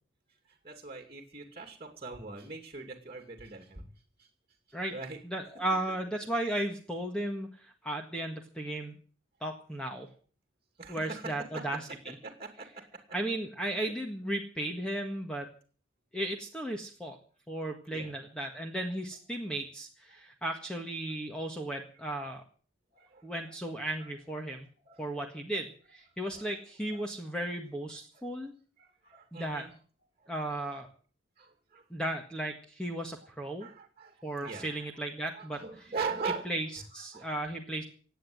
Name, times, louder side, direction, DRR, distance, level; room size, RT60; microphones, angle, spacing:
voice 1, 0.5-3.9 4.2-4.3 4.7-5.2 10.8-11.7 12.2-13.0 13.8-13.9 17.9-18.1 20.1-20.2 22.9-23.5 24.0-24.1 24.4-25.0 26.3-26.5 26.9-27.0 28.1-28.2 28.8-29.7 30.2-30.3 31.4-31.8 33.6-34.9 35.3-36.5 37.0-37.3, right 4 dB, 30° right, 4 dB, 2.7 m, -41 dB
voice 2, 5.2-9.0 9.4-10.1 10.9-12.2 13.1-15.5 16.1-17.2 17.5-22.4 23.2-24.7 25.0-28.5 29.3-29.6 30.3-30.9 31.9-33.7 34.2-35.7 36.4-37.8, right 1 dB, 5° left, 2 dB, 1.7 m, -35 dB
17.0 x 9.3 x 7.9 m, 0.42 s
head